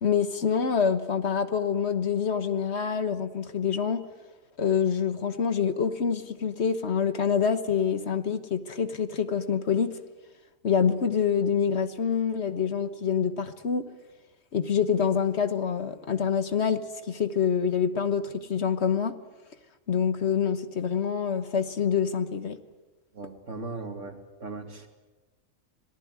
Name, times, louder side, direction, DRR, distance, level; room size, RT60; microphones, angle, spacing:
voice 1, 0.0-4.0 4.6-9.9 10.6-13.9 14.5-19.1 19.9-22.6, left 7 dB, 55° left, 11 dB, 1.4 m, -26 dB
voice 2, 23.1-24.9, right 3 dB, 65° right, 5 dB, 2.8 m, -38 dB
26.0 x 18.5 x 9.5 m, 1.1 s
omnidirectional pair, 1.4 m